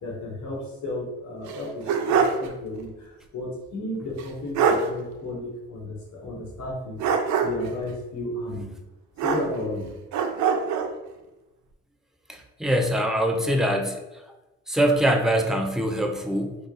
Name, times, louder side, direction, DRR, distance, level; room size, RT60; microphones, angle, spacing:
voice 1, 0.0-7.1 7.4-8.8 9.2-10.0, left 1 dB, 70° left, -3 dB, 1.3 m, -33 dB
sound 1, 1.5-2.5 2.8-2.9 4.2-4.3 4.6-4.9 7.0-7.7 9.2-9.8 10.1-10.9, right 6 dB, 70° right, 0.5 m, -23 dB
voice 2, 12.3-14.0 14.7-16.6, right 1 dB, ahead, 3 dB, 0.4 m, -23 dB
3.2 x 2.4 x 3.8 m, 1.0 s
cardioid pair, 90°, 30 cm